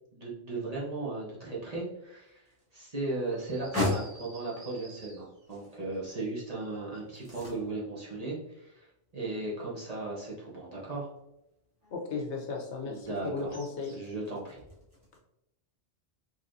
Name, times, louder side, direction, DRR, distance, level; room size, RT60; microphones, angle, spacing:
voice 1, 0.1-2.4 2.7-11.1 12.8-13.5 13.8-14.6, right 2 dB, 35° right, -5 dB, 0.9 m, -37 dB
sound 1, 2.0-15.2, left 2 dB, 15° right, 1.5 m, -41 dB
sound 2, 3.3-5.6 13.5-14.2, right 2 dB, 80° right, 1.3 m, -52 dB
voice 2, 11.9-13.9, left 4 dB, 70° left, 0 dB, 1.1 m, -35 dB
4.1 x 3.1 x 2.5 m, 0.85 s
omnidirectional pair, 1.2 m